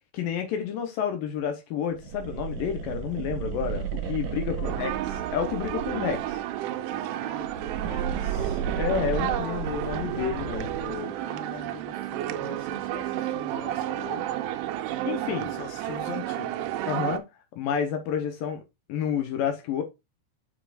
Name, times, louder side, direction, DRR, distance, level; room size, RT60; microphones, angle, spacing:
voice 1, 0.1-4.9 5.3-6.4 8.8-10.7 15.0-15.5 16.9-17.3 17.6-18.6 18.9-19.8, left 8 dB, 85° left, 2.0 m, -29 dB
sound 1, 2.0-6.4 7.3-11.0, right 8 dB, 65° right, 2.2 m, -33 dB
voice 2, 4.6-4.9 7.0-8.6 9.2-9.8 10.1-14.4 15.4-16.7, left 7 dB, 60° left, 3.1 m, -43 dB
sound 2, 4.6-17.2, right 13 dB, 85° right, 3.2 m, -31 dB
7.4 x 6.9 x 2.5 m
omnidirectional pair, 5.5 m